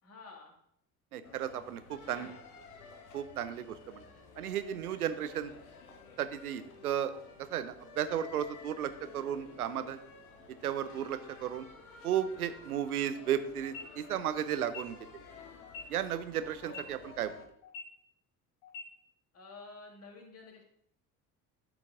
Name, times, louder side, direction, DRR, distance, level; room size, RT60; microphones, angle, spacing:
voice 1, 0.0-0.5 1.9-2.4 16.6-16.9 19.3-20.6, left 3 dB, 35° left, 1 dB, 2.4 m, -50 dB
voice 2, 1.1-2.3 3.1-4.0 4.4-5.5 6.2-7.1 7.5-10.0 10.5-11.7 12.0-15.2 15.9-17.3, right 10 dB, 75° right, 12 dB, 0.7 m, -34 dB
sound 1, 1.2-17.5, left 4 dB, 75° left, 1.1 m, -53 dB
sound 2, 13.6-13.8 14.6-14.8 15.6-15.8 16.6-16.8 17.6-17.8 18.6-18.8, left 5 dB, 55° left, 3.0 m, -43 dB
12.0 x 4.7 x 3.7 m, 0.70 s
figure-of-eight pair, 55°, 44 cm